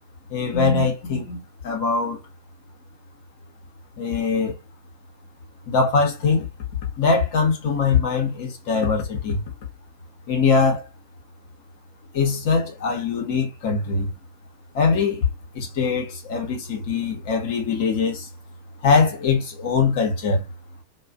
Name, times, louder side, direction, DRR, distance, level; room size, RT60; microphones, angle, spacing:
voice 1, 0.3-2.2 4.0-4.6 5.7-6.5 7.0-9.4 10.3-10.8 12.1-14.1 14.7-15.3 15.5-18.3 18.8-20.4, left 5 dB, 50° left, 0.9 m, -22 dB
2.4 x 2.2 x 2.3 m
figure-of-eight pair, 90°, 0 cm